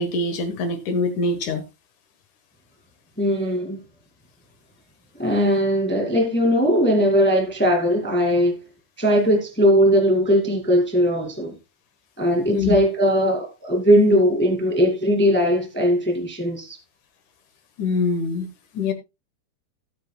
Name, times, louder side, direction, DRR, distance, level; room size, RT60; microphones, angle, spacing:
voice 1, 0.0-1.6 12.5-12.8 17.8-18.5 18.7-18.9, left 3 dB, 65° left, 2.1 m, -24 dB
voice 2, 3.2-3.8 5.2-8.6 9.0-11.5 12.2-16.8, equal, 10° left, 0.7 m, -19 dB
16.5 x 8.6 x 2.3 m
omnidirectional pair, 4.7 m